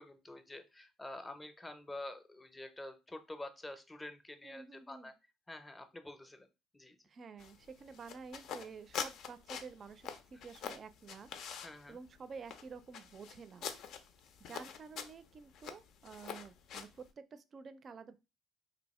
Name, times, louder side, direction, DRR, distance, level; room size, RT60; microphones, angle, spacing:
voice 1, 0.0-5.1 5.5-6.5 6.7-7.0 11.6-12.0, left 1 dB, 15° left, 9 dB, 0.6 m, -48 dB
voice 2, 4.4-5.1 7.1-11.3 11.5-13.7 14.4-18.1, right 5 dB, 40° right, 12 dB, 0.4 m, -51 dB
sound 1, 7.4-17.1, left 7 dB, 65° left, 0.5 m, -46 dB
2.7 x 2.6 x 4.1 m, 0.27 s
cardioid pair, 100°, 0 cm